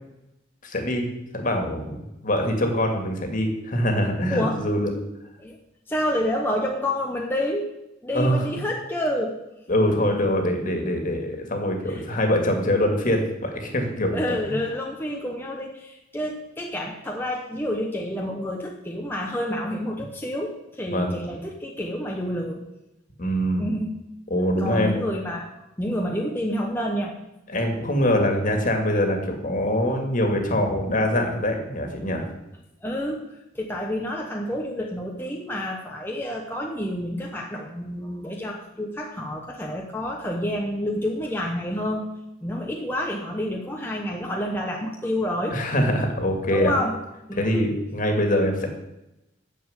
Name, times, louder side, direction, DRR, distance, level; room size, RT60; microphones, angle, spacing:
voice 1, 0.6-1.1 1.3-4.9 8.1-8.4 9.7-14.4 20.9-21.2 23.2-23.7 24.3-25.0 27.5-32.3 45.5-46.7 47.4-48.7, left 1 dB, 45° left, 4 dB, 2.1 m, -24 dB
voice 2, 4.3-4.6 5.4-5.6 5.9-7.7 8.0-9.4 11.9-12.1 14.1-22.6 23.6-23.9 24.6-25.5 25.8-27.1 32.8-42.1 42.4-45.6 46.5-47.0 47.3-47.6, left 1 dB, 10° left, 0 dB, 0.9 m, -29 dB
10.0 x 6.9 x 8.1 m, 0.93 s
head